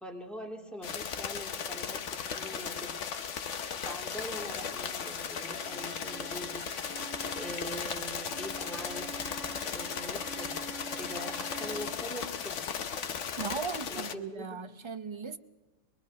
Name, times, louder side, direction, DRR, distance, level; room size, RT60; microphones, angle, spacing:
voice 1, 0.0-2.9 3.8-6.6 7.3-9.1 9.7-10.5 10.9-12.6 13.9-14.6, equal, ahead, 2.1 m, -43 dB
sound 1, 0.8-14.1, left 7 dB, 70° left, 1.2 m, -36 dB
sound 2, 4.6-9.4, equal, 40° left, 5.2 m, -63 dB
Bowed string instrument, 5.1-12.1, right 5 dB, 85° right, 1.4 m, -47 dB
voice 2, 13.4-15.4, right 5 dB, 30° right, 0.6 m, -38 dB
24.0 x 22.5 x 5.3 m
omnidirectional pair, 1.3 m